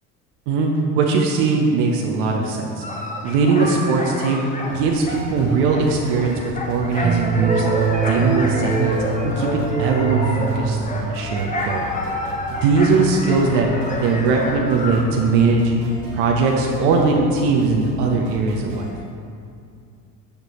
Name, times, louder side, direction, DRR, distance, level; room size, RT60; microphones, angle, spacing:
voice 1, 0.9-2.8 3.2-4.4 4.7-6.4 6.7-7.7 8.1-9.0 9.2-11.8 12.5-13.7 14.0-15.8 16.1-18.9, right 4 dB, 60° right, 0 dB, 1.0 m, -20 dB
sound 1, 2.8-15.0, left 1 dB, 15° left, 1.1 m, -30 dB
sound 2, 4.7-18.9, right 1 dB, 75° right, 1.5 m, -36 dB
sound 3, 7.0-11.1, right 5 dB, 15° right, 0.9 m, -23 dB
10.0 x 6.7 x 3.1 m, 2.4 s
figure-of-eight pair, 65°, 49 cm